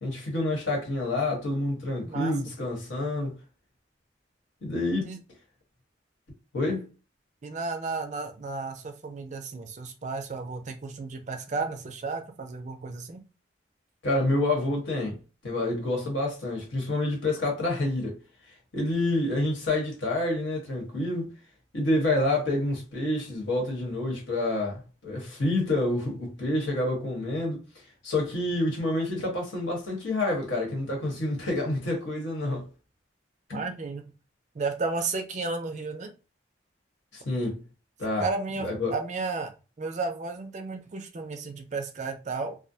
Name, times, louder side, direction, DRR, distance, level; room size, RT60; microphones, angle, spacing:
voice 1, 0.0-3.3 4.6-5.1 6.5-6.9 14.0-15.2 15.4-18.2 18.7-21.3 21.7-27.6 28.0-32.6 33.5-33.6 37.1-37.6 38.0-38.2 38.6-38.9, left 2 dB, 85° left, 1.1 m, -28 dB
voice 2, 2.0-2.3 5.0-5.2 7.4-13.2 33.5-34.1 34.5-36.1 38.2-39.5 39.8-42.6, right 3 dB, 40° right, 0.4 m, -33 dB
2.5 x 2.0 x 2.6 m
head